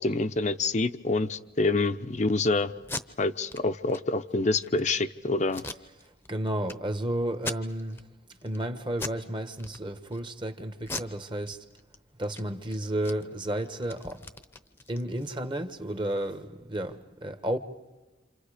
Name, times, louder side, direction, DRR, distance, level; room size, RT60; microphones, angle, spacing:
voice 1, 0.0-2.7 3.2-5.6, left 3 dB, 40° left, 0.7 m, -26 dB
Packing tape duct tape, 2.8-3.0 3.5-3.6 3.9-4.0 4.4-4.8 5.5-6.3 6.7-6.8 7.3-8.0 8.4-8.6 8.9-9.2 9.6-10.2 10.8-12.0 12.2-12.4 12.7-15.3, left 3 dB, 10° left, 0.8 m, -39 dB
voice 2, 6.0-8.1 8.4-11.6 12.2-14.2 14.9-17.6, right 1 dB, 25° right, 1.3 m, -32 dB
28.0 x 28.0 x 5.0 m
head